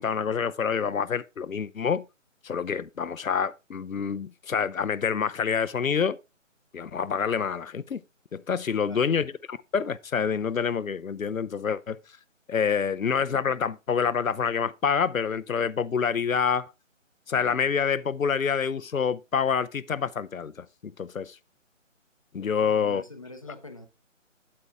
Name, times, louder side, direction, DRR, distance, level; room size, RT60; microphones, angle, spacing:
voice 1, 0.0-2.0 2.4-6.2 6.7-8.0 8.3-12.0 12.5-16.7 17.3-21.4 22.3-23.0, left 6 dB, 85° left, 0.7 m, -27 dB
voice 2, 8.8-9.2 22.6-23.9, left 2 dB, 25° left, 0.6 m, -44 dB
8.8 x 8.6 x 3.4 m
figure-of-eight pair, 155°, 39 cm